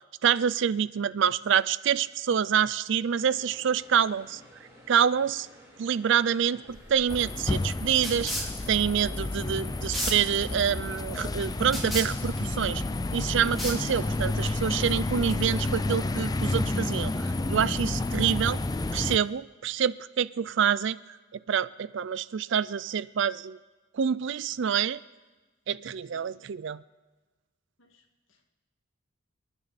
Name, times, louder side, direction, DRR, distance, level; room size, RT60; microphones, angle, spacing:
voice 1, 0.2-4.4 4.9-5.5 5.8-12.8 13.1-18.6 18.9-21.0 21.3-23.6 23.9-25.0 25.7-26.8, right 8 dB, 60° right, 18 dB, 0.4 m, -27 dB
sound 1, 3.2-18.2, equal, 15° right, 3.4 m, -53 dB
sound 2, 6.7-14.3, equal, ahead, 3.2 m, -37 dB
sound 3, 7.1-19.2, left 2 dB, 20° left, 0.4 m, -30 dB
voice 2, 27.8-28.5, left 3 dB, 75° left, 3 dB, 2.0 m, -63 dB
29.5 x 9.8 x 4.1 m, 1.3 s
head